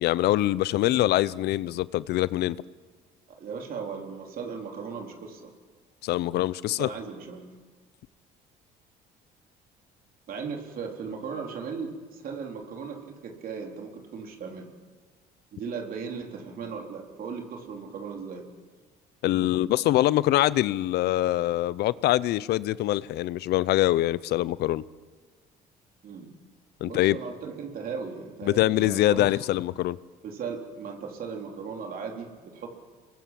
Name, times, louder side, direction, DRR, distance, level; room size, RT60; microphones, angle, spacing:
voice 1, 0.0-2.6 6.0-6.9 19.2-24.8 26.8-27.2 28.4-30.0, left 15 dB, 75° left, 0.7 m, -24 dB
voice 2, 3.4-5.5 6.8-7.5 10.3-14.7 15.5-18.4 26.0-26.3 26.8-29.4 30.2-32.7, right 5 dB, 60° right, 4.0 m, -37 dB
27.0 x 22.0 x 7.6 m
cardioid pair, 110°, 17 cm